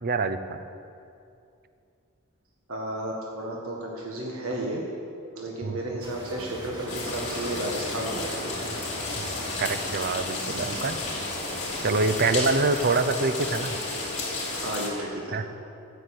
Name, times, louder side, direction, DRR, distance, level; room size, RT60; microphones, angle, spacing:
voice 1, 0.0-0.6 5.6-5.8 9.2-11.0 11.8-13.8 14.0-14.1 15.3-15.6, right 3 dB, 45° right, 10 dB, 0.7 m, -26 dB
voice 2, 2.7-4.8 5.3-8.6 14.5-15.4, right 1 dB, 75° right, -1 dB, 1.6 m, -33 dB
sound 1, 6.0-9.9 10.4-12.9, equal, 20° right, 2.2 m, -41 dB
sound 2, 6.9-14.9, left 2 dB, 35° left, 3.6 m, -32 dB
13.0 x 8.0 x 8.2 m, 2.6 s
head